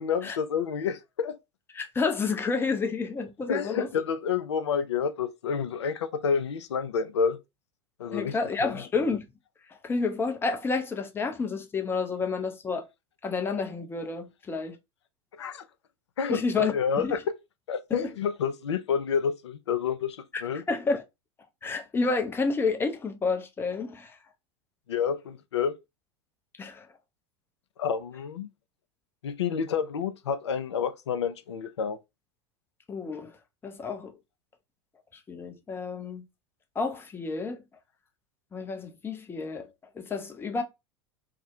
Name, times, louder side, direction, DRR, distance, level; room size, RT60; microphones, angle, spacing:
voice 1, 0.0-1.4 3.5-7.4 8.0-8.8 15.4-15.6 16.2-17.2 17.7-20.6 24.9-25.8 27.8-28.5 29.2-32.0, left 6 dB, 80° left, 0.4 m, -29 dB
voice 2, 1.7-3.9 8.1-9.3 9.8-12.9 13.2-14.8 16.3-17.1 17.9-18.1 20.3-20.4 20.7-21.0 21.6-24.2 26.6-26.9 32.9-33.3 33.6-34.1 35.3-36.2 36.8-37.6 38.5-39.7 40.0-40.6, left 4 dB, 15° left, 0.5 m, -30 dB
2.3 x 2.0 x 2.7 m
hypercardioid pair, 90°, 14 cm